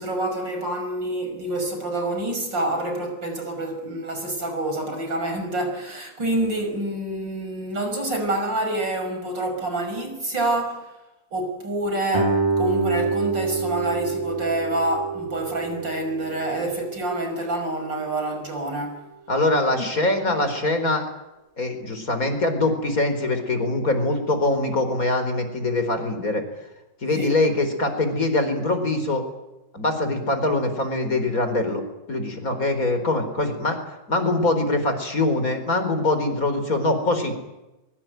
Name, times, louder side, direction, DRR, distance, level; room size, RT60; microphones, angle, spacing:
voice 1, 0.0-10.9 11.3-19.0 19.8-19.9 20.2-20.5 27.1-27.3, right 1 dB, 80° right, 5 dB, 6.5 m, -27 dB
Guitar, 12.1-17.5, right 3 dB, 15° right, 3.3 m, -27 dB
voice 2, 19.3-21.0 21.6-26.4 27.0-29.2 29.7-37.3, left 2 dB, 50° left, 8 dB, 4.7 m, -23 dB
24.0 x 23.0 x 9.3 m, 0.99 s
omnidirectional pair, 2.0 m